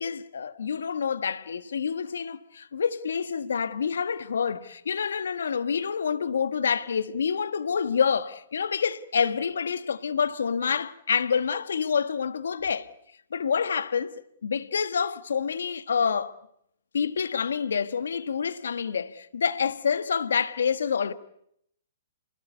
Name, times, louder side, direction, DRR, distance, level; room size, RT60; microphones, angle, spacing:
voice 1, 0.0-12.9 13.3-16.3 16.9-21.1, left 6 dB, 70° left, 1.4 m, -27 dB
28.0 x 20.5 x 8.2 m
hypercardioid pair, 125°, 0 cm